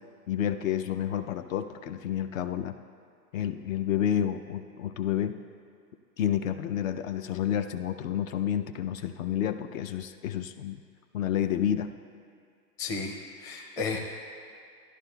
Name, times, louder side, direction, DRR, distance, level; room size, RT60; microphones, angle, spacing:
voice 1, 0.3-2.7 3.3-5.4 6.2-10.8 11.1-12.0, left 10 dB, 55° left, 8 dB, 0.5 m, -30 dB
voice 2, 12.8-14.0, left 4 dB, 5° left, -2 dB, 0.5 m, -33 dB
15.0 x 11.0 x 2.3 m, 2.4 s
hypercardioid pair, 140°, 49 cm